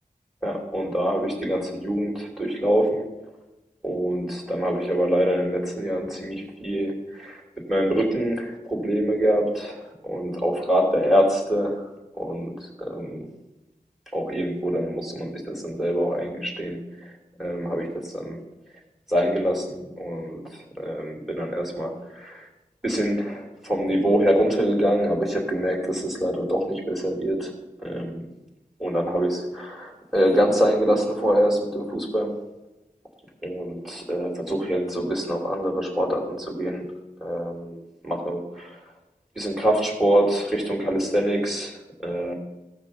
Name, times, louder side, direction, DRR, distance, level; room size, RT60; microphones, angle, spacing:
voice 1, 0.4-3.1 3.8-7.4 7.7-11.8 12.2-13.3 14.1-17.1 17.4-18.4 19.1-22.5 22.8-27.5 27.8-28.3 28.8-32.4 33.4-36.8 37.2-38.8 39.3-42.3, equal, ahead, 0 dB, 3.0 m, -25 dB
16.0 x 6.0 x 6.2 m, 0.98 s
wide cardioid pair, 50°, 16 cm